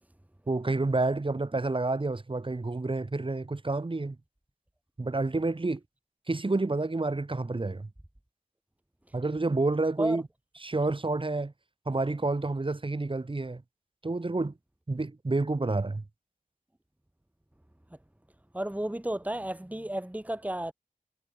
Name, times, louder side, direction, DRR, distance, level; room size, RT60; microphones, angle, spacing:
voice 1, 0.5-4.2 5.0-5.8 6.3-7.9 9.1-10.2 10.6-11.5 11.8-13.6 14.0-14.5 14.9-16.0, right 2 dB, 40° right, 3.2 m, -29 dB
voice 2, 18.5-20.7, right 1 dB, 10° right, 2.2 m, -32 dB
wide cardioid pair, 80°, 14 cm